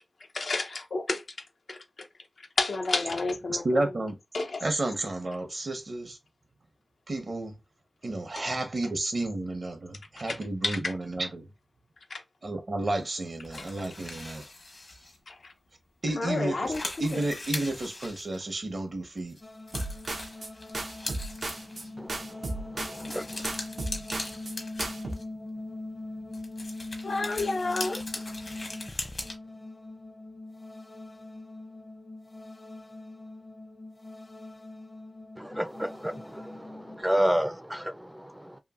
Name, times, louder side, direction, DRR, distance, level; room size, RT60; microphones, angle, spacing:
voice 1, 0.3-1.2 1.7-1.8 2.6-3.8 4.3-4.6 10.3-10.4 10.6-10.9 12.1-12.2 15.3-15.5 16.2-17.2 27.0-28.0, left 3 dB, 85° left, 0.6 m, -30 dB
voice 2, 3.5-4.2 4.6-6.2 7.1-7.6 8.0-11.5 12.4-14.4 16.0-16.7 17.0-19.4, right 2 dB, 65° right, 0.9 m, -31 dB
sound 1, 13.4-15.2 15.7-15.8 16.2-16.3 16.5-18.8 19.3-19.4 19.7-21.9 22.8-25.4 26.3-29.3, left 2 dB, 65° left, 1.0 m, -40 dB
sound 2, 19.4-37.0, left 2 dB, 35° left, 0.6 m, -42 dB
sound 3, 19.7-20.5 20.7-21.8 22.1-23.2 23.4-24.5 24.8-25.1, right 2 dB, 80° right, 0.6 m, -35 dB
voice 3, 22.9-23.3 35.4-38.6, equal, 10° right, 0.4 m, -30 dB
3.0 x 2.6 x 2.4 m
wide cardioid pair, 55°, 0 cm